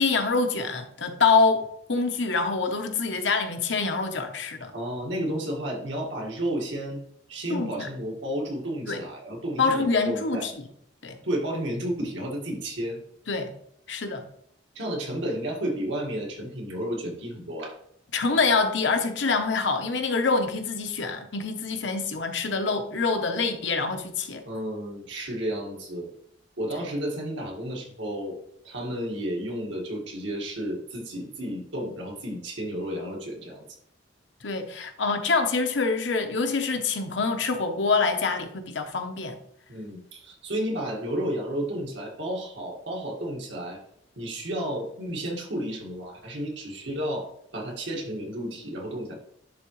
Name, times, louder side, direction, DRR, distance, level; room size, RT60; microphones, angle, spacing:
voice 1, 0.0-4.7 7.5-7.9 8.9-9.0 9.6-10.5 11.0-11.2 13.3-13.5 13.9-14.2 18.1-24.4 34.4-39.4, left 4 dB, 70° left, 1.0 m, -25 dB
voice 2, 4.7-7.0 7.3-10.5 11.2-13.0 14.8-17.8 24.5-26.1 26.6-28.4 28.6-33.7 39.7-43.8 44.2-49.2, right 1 dB, 75° right, 1.9 m, -32 dB
10.5 x 3.8 x 3.2 m
head